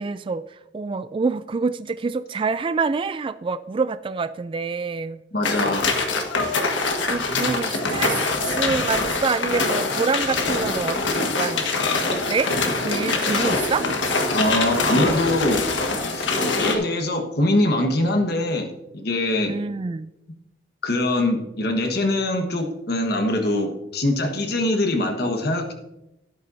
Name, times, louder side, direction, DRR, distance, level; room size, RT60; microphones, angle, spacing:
voice 1, 0.0-5.2 7.1-8.2 8.6-11.0 11.3-11.7 12.1-12.5 12.8-13.8 19.5-20.1, right 4 dB, 30° right, 13 dB, 0.3 m, -26 dB
voice 2, 5.3-6.0 7.4-7.5 14.3-15.6 16.1-18.7 18.9-19.5 20.8-25.7, left 1 dB, 60° left, 4 dB, 1.4 m, -23 dB
sound 1, 5.4-16.7, left 3 dB, 90° left, 1.6 m, -24 dB
13.0 x 11.5 x 2.7 m, 0.93 s
head